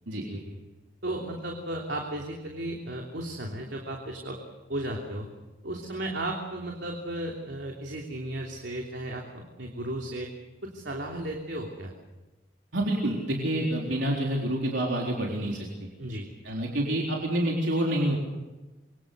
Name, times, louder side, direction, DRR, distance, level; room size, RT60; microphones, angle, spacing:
voice 1, 1.0-4.4 4.7-5.3 5.6-10.3 10.6-11.9 16.0-16.3, right 1 dB, 70° right, 0 dB, 3.3 m, -35 dB
voice 2, 12.7-15.7 16.4-18.2, right 1 dB, 85° right, -1 dB, 3.9 m, -27 dB
26.5 x 23.5 x 6.8 m, 1.1 s
head